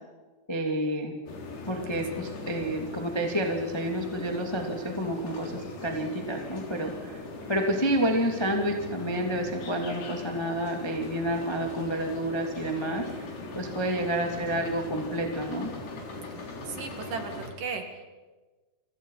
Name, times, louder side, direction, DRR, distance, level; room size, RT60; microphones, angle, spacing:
voice 1, 0.5-1.1 1.7-7.2 7.5-13.3 13.5-15.7, right 1 dB, 10° left, 2 dB, 1.3 m, -29 dB
sound 1, 1.2-17.5, left 2 dB, 70° left, 5.7 m, -40 dB
voice 2, 14.0-14.3 16.7-17.8, right 5 dB, 55° right, 5 dB, 3.3 m, -36 dB
29.5 x 24.0 x 5.7 m, 1.3 s
omnidirectional pair, 5.1 m